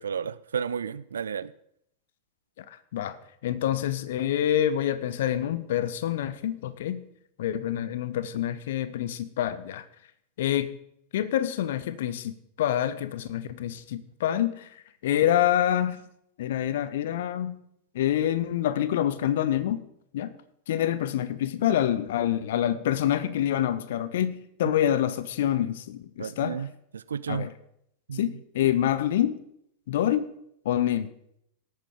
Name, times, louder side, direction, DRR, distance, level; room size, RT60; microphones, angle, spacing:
voice 1, 0.0-1.5 26.2-27.5 28.1-28.3, right 7 dB, 70° right, 18 dB, 0.4 m, -32 dB
voice 2, 2.6-3.2 3.4-7.0 7.4-9.8 10.4-10.7 11.1-14.7 15.0-16.0 16.4-17.6 17.9-19.8 20.1-20.3 20.7-26.6 27.3-27.5 28.1-29.4 29.9-30.3 30.6-31.1, left 11 dB, 55° left, 15 dB, 0.8 m, -26 dB
18.0 x 8.7 x 3.8 m, 0.73 s
figure-of-eight pair, 90°, 0 cm